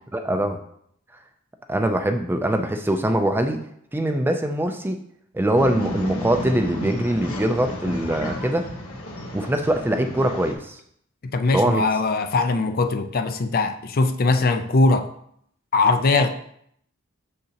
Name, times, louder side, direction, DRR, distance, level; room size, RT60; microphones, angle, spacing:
voice 1, 0.1-0.6 1.7-3.6 3.9-5.0 5.3-8.7 9.3-10.8 11.5-11.8, right 1 dB, 10° right, 5 dB, 0.4 m, -22 dB
Male speech man speaking / Chatter / Rattle, 5.6-10.5, left 1 dB, 80° left, 1.3 m, -32 dB
voice 2, 11.2-15.1 15.7-16.3, left 3 dB, 45° left, 8 dB, 0.5 m, -21 dB
6.6 x 6.4 x 2.9 m, 0.68 s
head